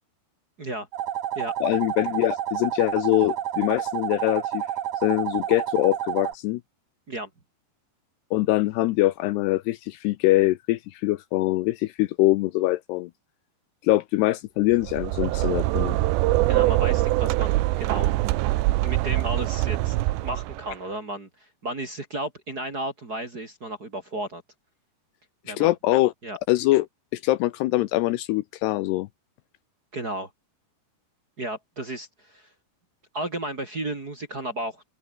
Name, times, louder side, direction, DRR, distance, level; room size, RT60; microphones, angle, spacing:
sound 1, 0.9-6.3, right 11 dB, 60° right, 2.4 m, -30 dB
voice 1, 1.6-4.7 5.0-6.6 8.3-13.1 13.8-16.0 25.5-26.1 26.5-26.9 27.1-29.1, left 17 dB, 80° left, 2.6 m, -23 dB
sound 2, 14.7-20.7, right 18 dB, 80° right, 3.1 m, -23 dB
voice 2, 16.5-18.5 18.8-20.0 20.2-21.3 21.6-24.4 25.4-25.7 26.2-26.4 29.9-30.3 31.4-32.5 33.1-34.8, right 1 dB, 25° right, 2.4 m, -33 dB
open air
omnidirectional pair, 5.2 m